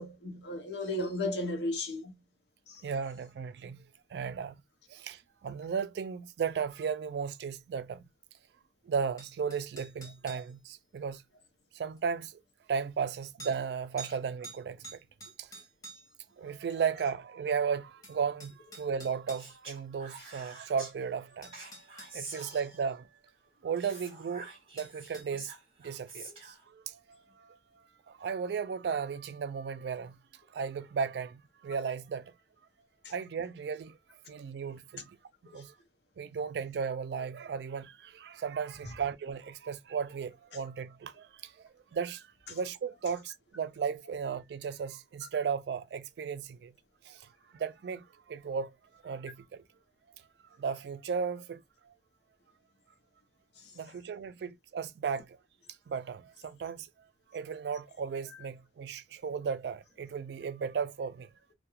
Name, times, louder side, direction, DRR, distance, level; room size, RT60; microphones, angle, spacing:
voice 1, 0.0-2.2 2.7-2.8 22.3-22.5 33.0-33.1 35.5-35.6, left 1 dB, 75° left, 0.7 m, -35 dB
voice 2, 2.8-3.9 4.1-4.6 4.9-8.0 8.9-11.2 11.7-12.4 12.7-15.0 15.4-15.5 16.4-21.6 22.1-23.1 23.6-25.5 25.8-27.6 28.1-30.2 30.5-32.3 33.1-34.0 34.3-35.2 35.5-35.7 36.2-46.7 47.0-47.3 47.5-48.7 49.0-49.6 50.6-51.6 53.8-55.4 55.9-56.9 57.3-61.3, right 6 dB, 70° right, 0.3 m, -35 dB
sound 1, 9.2-10.5 12.0-12.1 13.4-13.6 14.0-14.2 14.4-16.2 17.6-17.7 18.0-19.5 20.9-21.0 21.4-22.1 24.8-25.3, right 3 dB, 20° left, 0.7 m, -48 dB
Speech, 19.4-20.9 21.5-23.0 23.8-26.6, right 3 dB, 30° right, 1.1 m, -47 dB
2.3 x 2.2 x 2.9 m
head